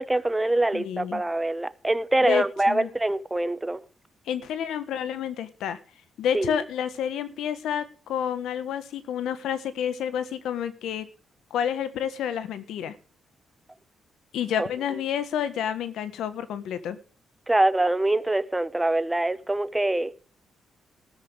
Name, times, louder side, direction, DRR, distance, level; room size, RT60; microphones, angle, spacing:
voice 1, 0.0-3.8 6.3-6.6 14.6-14.7 17.5-20.2, right 2 dB, 10° right, 0.9 m, -24 dB
voice 2, 0.7-1.2 2.2-2.9 4.2-5.8 6.2-11.1 11.5-12.9 14.3-17.0, left 9 dB, 85° left, 1.5 m, -29 dB
14.5 x 13.5 x 3.6 m
cardioid pair, 90°, 0 cm